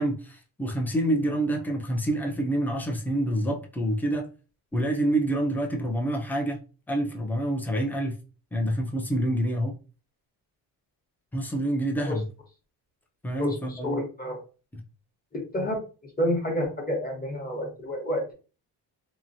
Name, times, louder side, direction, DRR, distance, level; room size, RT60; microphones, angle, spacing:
voice 1, 0.0-4.3 4.7-6.6 6.9-8.2 8.5-9.7 11.3-12.3 13.2-14.0 14.7-14.8, right 1 dB, 5° left, 0.6 m, -27 dB
voice 2, 13.4-14.4 15.3-15.8 16.2-18.3, left 1 dB, 20° left, 1.1 m, -29 dB
3.0 x 2.2 x 2.7 m
cardioid pair, 85°, 44 cm